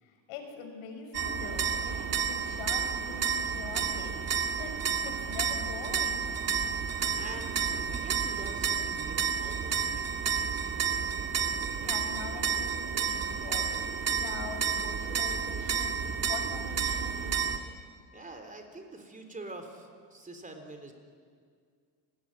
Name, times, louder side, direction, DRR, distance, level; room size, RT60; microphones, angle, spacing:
voice 1, 0.0-2.0 2.3-4.1 4.6-6.3 11.0-11.3 11.8-16.0 16.3-17.3, left 5 dB, 85° left, 4 dB, 6.2 m, -43 dB
sound 1, 1.1-17.6, right 7 dB, 35° right, 2.2 m, -31 dB
voice 2, 7.2-10.5 18.1-20.9, right 2 dB, 15° right, 5 dB, 3.6 m, -46 dB
29.5 x 19.5 x 9.9 m, 2.1 s
cardioid pair, 135°, 47 cm